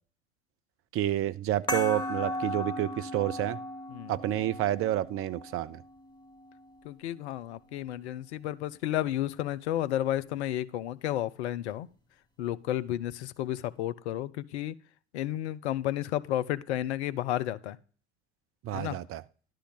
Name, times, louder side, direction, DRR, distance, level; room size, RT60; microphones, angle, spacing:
voice 1, 0.9-3.6 4.1-5.8 18.6-19.2, right 13 dB, 40° right, 14 dB, 0.6 m, -29 dB
sound 1, 1.7-6.8, left 1 dB, 10° left, 2.4 m, -37 dB
voice 2, 6.8-11.9 12.4-14.7 15.1-17.8 18.7-19.0, left 12 dB, 70° left, 16 dB, 0.6 m, -32 dB
11.5 x 3.8 x 6.7 m, 0.41 s
figure-of-eight pair, 65°, 35 cm